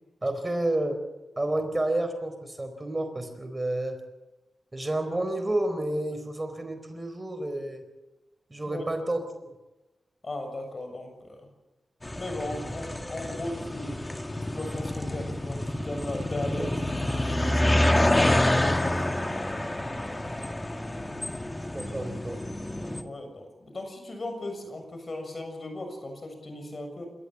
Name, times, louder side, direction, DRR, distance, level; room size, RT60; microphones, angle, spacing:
voice 1, 0.2-1.0 1.4-4.0 4.7-7.8 8.5-9.5 16.5-16.7 21.7-22.4, right 1 dB, 25° right, 7 dB, 4.2 m, -30 dB
voice 2, 10.2-11.5 12.2-14.0 14.4-19.2 23.0-27.1, left 1 dB, 50° left, 5 dB, 7.0 m, -37 dB
sound 1, 12.0-23.0, left 1 dB, 20° left, 2.0 m, -28 dB
26.5 x 13.5 x 8.7 m, 1.0 s
cardioid pair, 55°, 0 cm